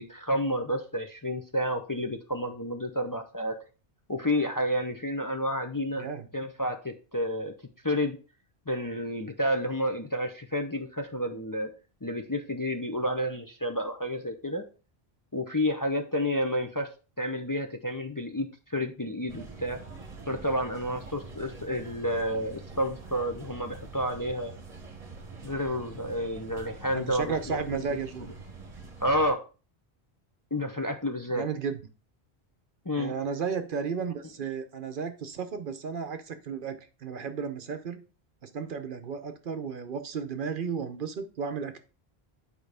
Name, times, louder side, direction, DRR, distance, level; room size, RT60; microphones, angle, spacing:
voice 1, 0.0-3.6 4.1-6.1 6.3-7.5 7.8-8.2 8.7-11.7 12.0-14.6 15.3-16.9 17.2-19.8 20.3-24.5 25.4-27.8 29.0-29.4 30.5-31.4 32.9-33.1, equal, 25° left, 4 dB, 0.6 m, -30 dB
sound 1, 19.3-29.3, right 4 dB, 35° right, 1.1 m, -45 dB
voice 2, 26.9-28.3 31.3-31.8 32.9-38.0 38.4-41.8, right 6 dB, 60° right, 9 dB, 0.8 m, -34 dB
8.7 x 4.8 x 3.4 m, 0.34 s
omnidirectional pair, 1.1 m